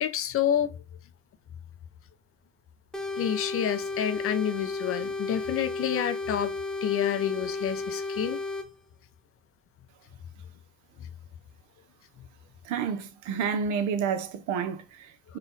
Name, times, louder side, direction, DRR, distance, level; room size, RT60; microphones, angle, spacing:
voice 1, 0.0-0.8 3.2-6.5 6.8-8.4 11.0-11.1, left 9 dB, 45° left, 0.5 m, -28 dB
sound 1, 2.9-8.7, left 3 dB, ahead, 0.6 m, -33 dB
voice 2, 12.6-15.4, right 6 dB, 65° right, 0.8 m, -30 dB
4.3 x 2.4 x 3.8 m
supercardioid pair, 100°, 33 cm